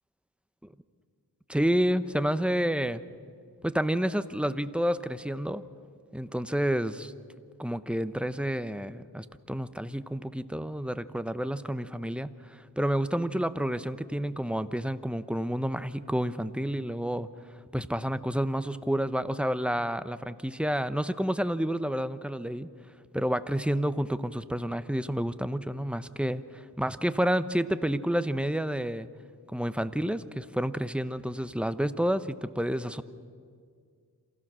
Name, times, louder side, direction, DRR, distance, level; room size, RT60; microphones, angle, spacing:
voice 1, 1.5-3.0 3.6-5.6 6.1-7.1 7.6-17.3 17.7-22.7 23.1-29.1 29.5-33.0, equal, 5° right, 12 dB, 0.8 m, -29 dB
27.5 x 16.0 x 6.3 m, 2.1 s
cardioid pair, 50°, 42 cm